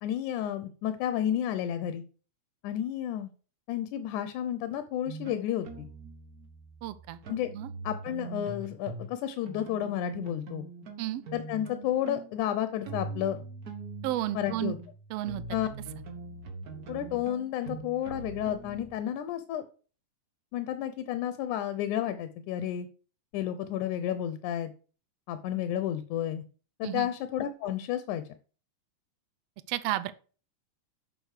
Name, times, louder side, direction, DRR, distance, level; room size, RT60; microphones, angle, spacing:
voice 1, 0.0-2.0 2.6-3.3 3.7-5.9 7.3-7.5 7.8-10.7 11.3-13.4 14.3-14.8 15.5-15.7 16.9-19.6 20.5-22.9 23.3-24.7 25.3-26.4 26.8-28.2, left 11 dB, 85° left, 11 dB, 2.2 m, -31 dB
sound 1, 5.1-9.1 9.5-19.0, right 4 dB, 50° right, 1.2 m, -42 dB
voice 2, 6.8-7.2 7.5-7.7 11.0-11.2 14.0-14.8 15.1-15.4 26.8-27.1 29.7-30.1, right 14 dB, 75° right, 14 dB, 1.5 m, -32 dB
8.1 x 6.0 x 6.5 m, 0.39 s
omnidirectional pair, 3.5 m